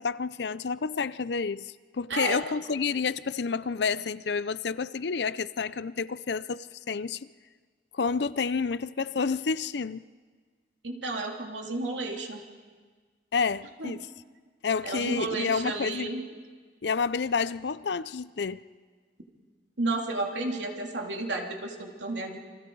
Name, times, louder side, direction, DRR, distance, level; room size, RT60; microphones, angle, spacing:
voice 1, 0.0-7.2 7.9-10.0 13.3-14.1 14.6-16.1 16.8-18.6, left 5 dB, 65° left, 0.5 m, -29 dB
voice 2, 10.8-12.4 13.8-13.9 14.8-16.2 19.8-22.4, right 2 dB, 85° right, 2.9 m, -32 dB
29.0 x 24.5 x 4.7 m
head